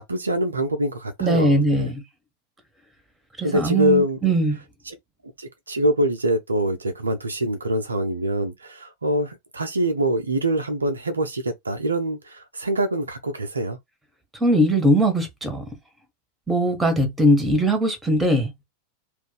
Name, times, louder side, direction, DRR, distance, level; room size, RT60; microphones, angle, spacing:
voice 1, 0.0-1.9 3.4-4.3 4.9-5.0 5.4-13.8, equal, 75° right, 0.6 m, -24 dB
voice 2, 1.2-2.0 3.4-4.6 14.4-15.6 16.5-18.5, right 1 dB, 10° right, 1.2 m, -20 dB
2.6 x 2.5 x 3.9 m
figure-of-eight pair, 90°, 0 cm